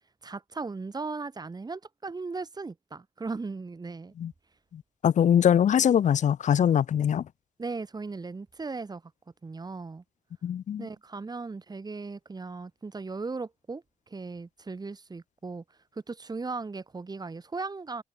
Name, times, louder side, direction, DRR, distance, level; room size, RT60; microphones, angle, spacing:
voice 1, 0.2-4.1 7.6-9.0 9.4-10.0 10.8-15.6 15.9-18.0, right 4 dB, 25° right, 5.1 m, -37 dB
voice 2, 4.7-7.3 10.4-10.9, left 9 dB, 55° left, 0.8 m, -23 dB
cardioid pair, 105°, 15 cm